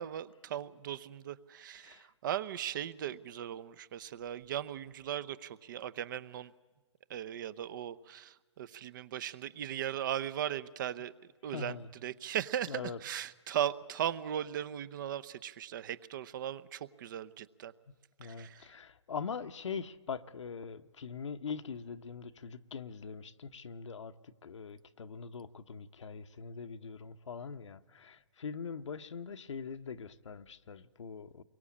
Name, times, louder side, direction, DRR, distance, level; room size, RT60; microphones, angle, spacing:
voice 1, 0.0-6.5 7.1-11.1 11.4-17.7 18.2-18.7, right 10 dB, 40° right, 16 dB, 0.9 m, -38 dB
voice 2, 11.5-11.9 12.7-13.0 18.2-31.4, left 6 dB, 70° left, 9 dB, 1.0 m, -42 dB
28.5 x 23.0 x 8.6 m, 1.2 s
hypercardioid pair, 150°, 16 cm